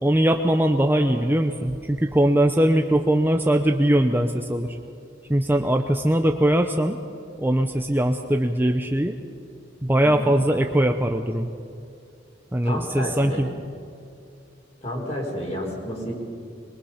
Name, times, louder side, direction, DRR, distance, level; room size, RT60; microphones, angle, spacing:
voice 1, 0.0-4.8 5.3-7.0 7.4-9.2 9.8-11.5 12.5-13.5, right 1 dB, 10° right, 5 dB, 0.7 m, -21 dB
voice 2, 12.6-13.4 14.8-16.1, equal, 35° left, -2 dB, 4.9 m, -30 dB
22.5 x 22.5 x 5.8 m, 2.5 s
head